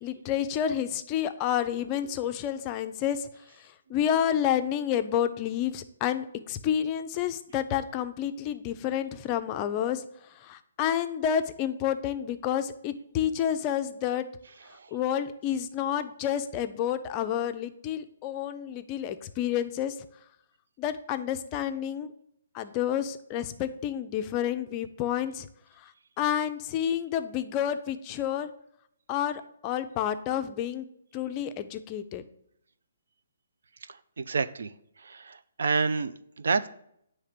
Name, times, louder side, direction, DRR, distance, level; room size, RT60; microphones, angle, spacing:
voice 1, 0.0-3.3 3.6-10.0 10.4-14.3 14.9-20.0 20.8-22.1 22.5-25.5 25.8-25.9 26.2-28.5 29.1-30.9 31.1-32.2, left 10 dB, 25° left, 9 dB, 0.4 m, -29 dB
voice 2, 33.9-34.7 35.0-36.7, right 4 dB, 75° right, 13 dB, 0.4 m, -29 dB
8.6 x 3.3 x 5.0 m, 0.71 s
hypercardioid pair, 160°, 0 cm